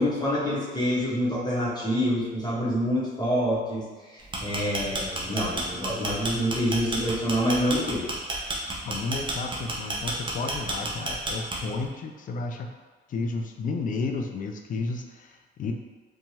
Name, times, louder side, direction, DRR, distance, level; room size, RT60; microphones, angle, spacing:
voice 1, 0.0-8.1, equal, 20° left, -7 dB, 1.0 m, -27 dB
sound 1, 4.2-11.8, right 2 dB, 25° right, 0.5 m, -31 dB
voice 2, 8.9-12.7 13.1-15.7, left 3 dB, 45° left, 4 dB, 0.4 m, -32 dB
2.7 x 2.2 x 3.0 m, 1.4 s
cardioid pair, 90°, 20 cm